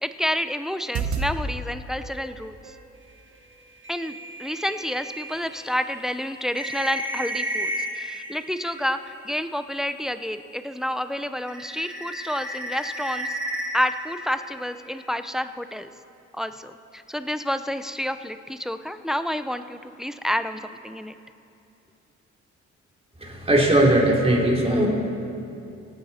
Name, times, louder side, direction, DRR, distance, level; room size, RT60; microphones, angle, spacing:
voice 1, 0.0-2.5 3.9-4.1 4.4-13.3 13.7-15.9 16.4-21.1, equal, ahead, 10 dB, 0.5 m, -29 dB
sound 1, 0.8-1.3 2.0-2.9 4.0-4.1 4.7-4.9 5.3-5.6 6.0-6.1, right 5 dB, 65° right, 1.4 m, -32 dB
sound 2, 3.8-10.7 11.0-15.0, equal, 40° right, 1.7 m, -34 dB
voice 2, 23.2-24.9, right 1 dB, 20° right, -2 dB, 3.3 m, -19 dB
24.5 x 8.8 x 4.3 m, 2.7 s
cardioid pair, 90°, 30 cm